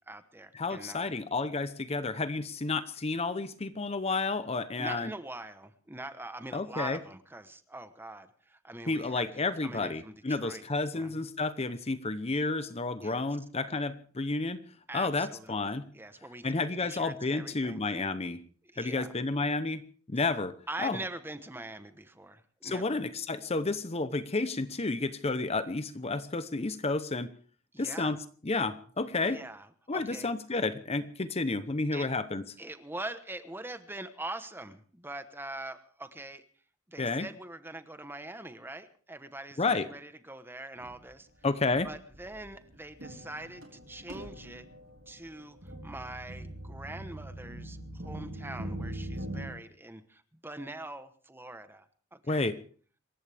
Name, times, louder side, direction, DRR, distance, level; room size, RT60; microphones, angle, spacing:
voice 1, 0.0-1.1 4.8-10.6 10.9-11.1 13.0-13.2 14.9-16.5 16.8-17.8 18.7-19.1 20.7-23.0 27.7-28.2 29.2-30.3 31.9-32.1 32.6-36.4 36.9-41.3 41.8-44.6 45.1-51.9 52.1-52.5, right 2 dB, 10° right, 11 dB, 1.1 m, -43 dB
voice 2, 0.5-5.1 6.5-7.0 8.9-14.6 14.9-15.8 16.4-18.4 18.8-19.8 20.1-20.5 20.8-21.0 22.6-27.3 27.8-28.2 28.4-29.4 29.9-32.4 37.0-37.3 39.6-39.9 41.4-41.9 52.3-52.5, left 3 dB, 30° left, 12 dB, 0.8 m, -31 dB
sound 1, 40.8-41.1 41.7-41.9 42.1-49.5, right 1 dB, 70° right, 3.9 m, -42 dB
27.0 x 14.5 x 3.5 m, 0.44 s
head